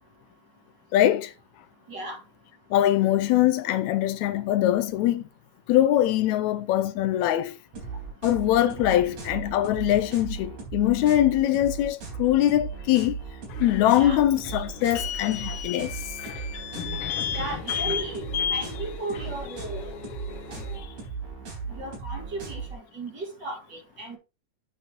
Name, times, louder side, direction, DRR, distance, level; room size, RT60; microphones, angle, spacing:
voice 1, 0.9-1.3 2.7-5.2 5.7-7.6 8.2-13.2 13.6-16.0, left 13 dB, 85° left, 1.9 m, -22 dB
voice 2, 1.9-2.2 8.8-9.0 9.9-10.0 13.9-14.2 17.3-18.2 18.5-19.9 20.5-20.8 21.7-24.2, right 2 dB, 40° right, 2.3 m, -36 dB
sound 1, 7.7-22.7, right 5 dB, 80° right, 5.1 m, -37 dB
sound 2, 13.5-20.8, left 8 dB, 65° left, 1.6 m, -33 dB
9.2 x 7.8 x 3.0 m
omnidirectional pair, 3.4 m